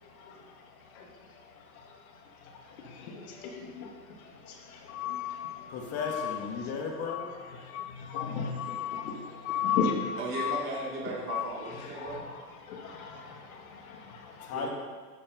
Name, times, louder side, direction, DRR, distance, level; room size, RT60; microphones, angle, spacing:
voice 1, 2.8-3.9 4.5-4.6 4.9-5.6 6.0-6.4 7.1-7.3 7.7-9.2 9.4-10.6 11.3-11.4 12.0-12.2 12.7-14.5, left 7 dB, 55° left, 2 dB, 2.5 m, -34 dB
voice 2, 5.7-7.3 14.4-14.7, left 5 dB, 30° left, 1 dB, 2.1 m, -34 dB
voice 3, 10.2-12.2 14.5-14.7, right 3 dB, 25° right, -4 dB, 3.5 m, -36 dB
12.5 x 7.6 x 5.4 m, 1.5 s
hypercardioid pair, 130°, 49 cm